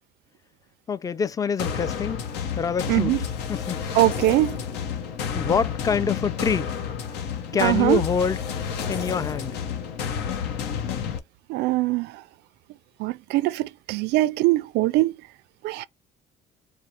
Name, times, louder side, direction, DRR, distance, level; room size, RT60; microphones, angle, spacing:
voice 1, 0.9-2.3 2.6-4.2 5.3-6.7 7.5-8.4 8.9-9.6, left 6 dB, 20° left, 0.4 m, -26 dB
sound 1, 1.6-11.2, left 7 dB, 85° left, 0.9 m, -30 dB
voice 2, 2.9-3.2 4.0-4.6 7.6-8.0 11.5-12.1 13.0-15.1 15.6-15.9, right 18 dB, 80° right, 0.4 m, -22 dB
4.3 x 2.1 x 4.3 m
cardioid pair, 110°, 17 cm